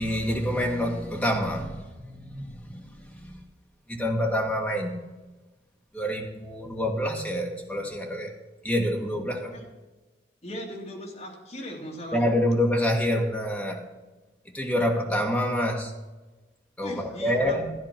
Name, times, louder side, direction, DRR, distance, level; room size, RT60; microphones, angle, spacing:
voice 1, 0.0-3.4 3.9-4.9 5.9-8.3 8.6-9.5 12.1-13.8 14.5-15.9 16.8-17.7, equal, 5° left, 0 dB, 1.7 m, -27 dB
voice 2, 10.4-12.2 16.8-17.6, equal, 40° left, -1 dB, 2.8 m, -38 dB
13.0 x 9.8 x 6.0 m, 1.2 s
head